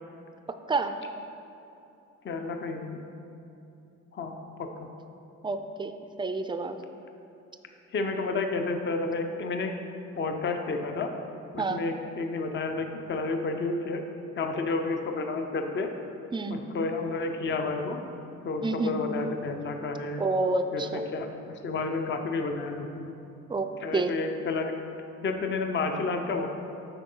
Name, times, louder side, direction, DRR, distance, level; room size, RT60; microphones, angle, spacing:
voice 1, 2.2-3.0 4.1-4.9 7.9-9.7 10.2-11.1 11.5-14.0 14.4-15.9 16.5-18.0 18.4-20.2 20.7-23.1 23.8-24.7 25.2-26.5, left 3 dB, 40° left, 5 dB, 0.6 m, -31 dB
voice 2, 5.4-5.9 6.2-6.8 11.6-11.8 16.3-16.6 18.6-18.9 20.2-21.0 23.5-23.7 23.9-24.1, right 3 dB, 15° right, 8 dB, 0.4 m, -28 dB
8.0 x 5.3 x 3.8 m, 2.8 s
cardioid pair, 90°, 30 cm